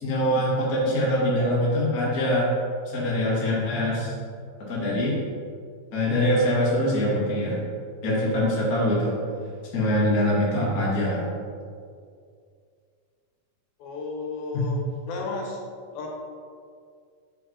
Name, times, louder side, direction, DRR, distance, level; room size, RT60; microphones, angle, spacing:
voice 1, 0.0-2.5 2.8-4.1 4.6-5.1 5.9-7.6 8.0-9.2 9.7-11.3 14.5-14.6, left 1 dB, 35° left, -6 dB, 1.5 m, -23 dB
voice 2, 13.8-15.6 15.9-16.1, left 3 dB, 80° left, 0 dB, 2.8 m, -33 dB
7.3 x 5.4 x 4.4 m, 2.2 s
omnidirectional pair, 4.2 m